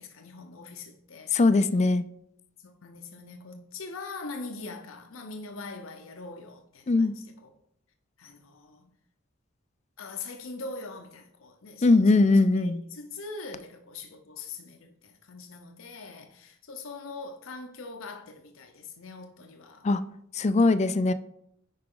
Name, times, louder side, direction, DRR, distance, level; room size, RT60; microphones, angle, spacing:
voice 1, 0.0-1.4 2.6-7.5 8.2-8.9 10.0-19.9, left 3 dB, 90° left, 0.9 m, -42 dB
voice 2, 1.3-2.0 6.9-7.1 11.8-12.8 19.8-20.0 20.3-21.1, left 3 dB, 35° left, 0.4 m, -21 dB
9.5 x 4.9 x 3.8 m
head